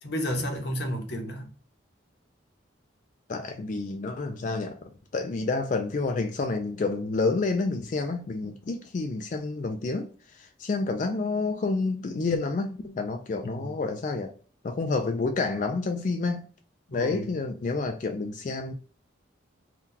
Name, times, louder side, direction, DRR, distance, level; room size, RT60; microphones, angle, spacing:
voice 1, 0.0-1.5 13.4-13.8 16.9-17.3, equal, 55° left, 0.8 m, -32 dB
voice 2, 3.3-4.8 5.1-10.1 10.4-14.3 14.6-16.4 16.9-18.7, left 3 dB, 40° left, 0.3 m, -29 dB
2.8 x 2.3 x 3.6 m
head